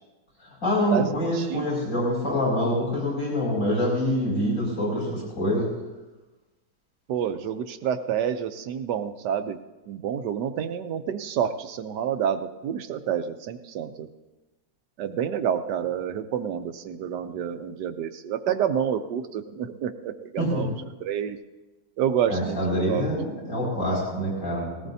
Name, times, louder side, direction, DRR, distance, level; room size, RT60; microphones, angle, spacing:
voice 1, 0.4-5.7 20.4-20.7 22.3-24.9, equal, 50° left, -5 dB, 6.2 m, -26 dB
voice 2, 7.1-9.6 9.9-14.1 15.0-20.7 21.0-21.4 22.0-23.1, right 9 dB, 80° right, 8 dB, 1.4 m, -28 dB
19.5 x 18.0 x 2.7 m, 1.1 s
omnidirectional pair, 1.8 m